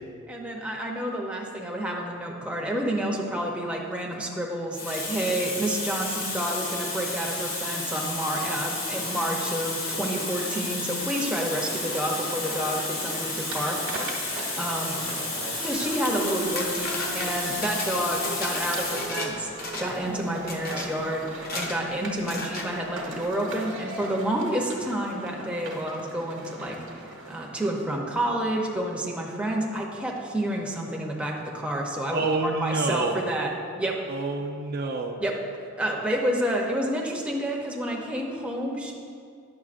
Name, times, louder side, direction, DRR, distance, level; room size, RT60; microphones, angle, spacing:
voice 1, 0.3-13.8 14.6-14.9 15.6-33.5 33.8-34.0 35.2-35.3 35.6-38.9, right 1 dB, 5° right, -1 dB, 0.6 m, -29 dB
Water tap faucet, 3.9-4.2 4.7-19.2 20.1-20.3, left 2 dB, 75° left, 1.8 m, -32 dB
sound 1, 11.6-28.0, right 2 dB, 65° right, 0.9 m, -40 dB
voice 2, 15.0-15.6 32.1-33.2 34.1-35.2, right 3 dB, 50° right, 2 dB, 0.4 m, -29 dB
sound 2, 16.1-19.3 19.6-20.1 20.5-20.9 21.4-21.8 22.3-22.7, left 2 dB, 45° left, 0.7 m, -35 dB
9.6 x 6.5 x 2.5 m, 2.3 s
head